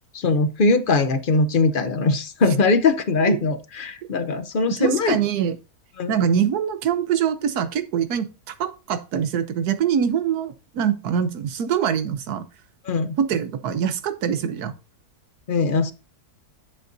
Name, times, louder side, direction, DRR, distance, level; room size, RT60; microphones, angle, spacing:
voice 1, 0.1-5.2 6.0-6.2 12.8-13.2 15.5-15.9, left 3 dB, 45° left, 0.7 m, -21 dB
voice 2, 4.6-5.5 6.1-12.4 13.2-14.7, right 8 dB, 80° right, 1.4 m, -24 dB
9.4 x 7.3 x 2.7 m
omnidirectional pair, 1.6 m